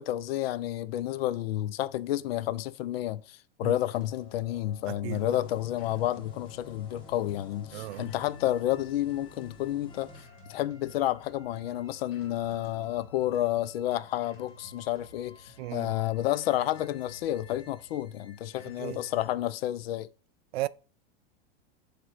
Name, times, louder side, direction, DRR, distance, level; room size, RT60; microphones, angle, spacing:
voice 1, 0.0-10.1 10.5-20.1, left 13 dB, 75° left, 0.7 m, -30 dB
sound 1, 3.8-19.3, left 2 dB, 40° left, 2.1 m, -53 dB
voice 2, 4.9-5.2 7.7-8.1 15.6-15.9 18.8-19.0 20.5-20.7, right 17 dB, 80° right, 0.5 m, -35 dB
sound 2, 5.1-10.2, left 3 dB, 15° left, 1.4 m, -52 dB
7.8 x 3.4 x 5.8 m
supercardioid pair, 155°, 31 cm